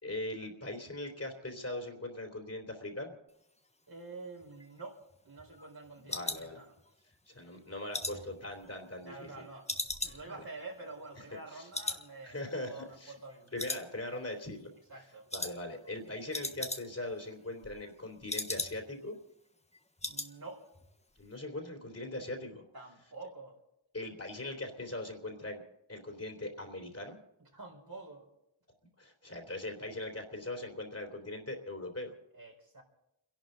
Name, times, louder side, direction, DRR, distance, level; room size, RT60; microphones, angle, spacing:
voice 1, 0.0-3.1 6.1-6.6 7.3-9.4 10.3-10.4 11.5-11.7 12.2-13.1 13.5-14.7 15.3-19.2 21.2-22.6 23.9-25.6 25.9-27.2 29.0-32.1, left 1 dB, 30° left, 3 dB, 3.4 m, -40 dB
voice 2, 3.9-5.0 5.2-6.8 7.9-8.3 9.1-13.5 14.9-15.3 20.0-20.7 22.7-23.6 27.4-28.3 32.3-32.8, right 3 dB, 50° right, 0 dB, 4.4 m, -48 dB
sound 1, 4.4-7.2 7.5-9.3 9.7-11.5 11.7-12.1 12.4-12.5 12.9-13.3 13.6-14.4 14.7-14.9 15.3-15.6 15.9-16.0 16.2-17.1 17.4-19.0 19.4-19.5 19.7-20.3 20.6-20.9 21.2-21.3, left 2 dB, 15° left, 1.3 m, -39 dB
29.5 x 11.5 x 3.9 m, 0.83 s
cardioid pair, 60°, 47 cm